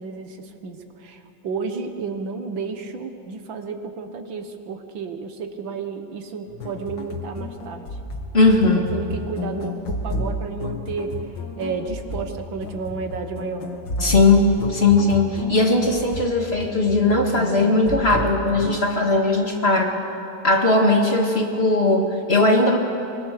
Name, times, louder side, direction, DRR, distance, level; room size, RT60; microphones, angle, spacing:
voice 1, 0.0-7.9 8.7-11.1 11.6-13.6, right 5 dB, 85° right, 6 dB, 2.2 m, -32 dB
sound 1, 6.5-18.8, left 2 dB, 70° left, 2.4 m, -32 dB
voice 2, 8.3-8.9 14.0-20.0 20.4-22.8, left 2 dB, 35° left, 2 dB, 2.1 m, -18 dB
24.5 x 23.0 x 6.7 m, 2.7 s
omnidirectional pair, 2.0 m